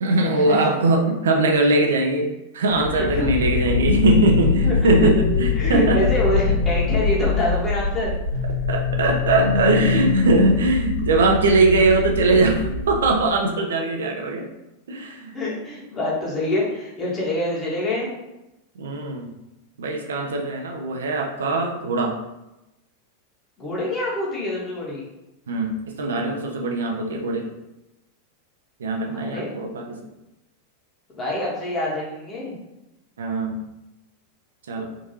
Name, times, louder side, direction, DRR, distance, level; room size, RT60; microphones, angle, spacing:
voice 1, 0.0-2.3 2.5-6.0 8.7-14.5 14.9-15.4 18.8-19.3 19.8-22.2 25.5-27.5 28.8-30.1 33.2-33.6 34.7-34.9, right 2 dB, 65° right, 2 dB, 0.5 m, -21 dB
sound 1, 2.7-13.3, left 4 dB, 85° right, 1.1 m, -23 dB
voice 2, 2.9-3.3 3.5-3.6 4.6-5.1 5.6-8.1 15.3-18.1 23.6-25.0 29.1-29.5 31.1-32.5, left 1 dB, 20° left, -5 dB, 1.3 m, -26 dB
3.7 x 2.6 x 2.8 m, 0.94 s
figure-of-eight pair, 90°, 0 cm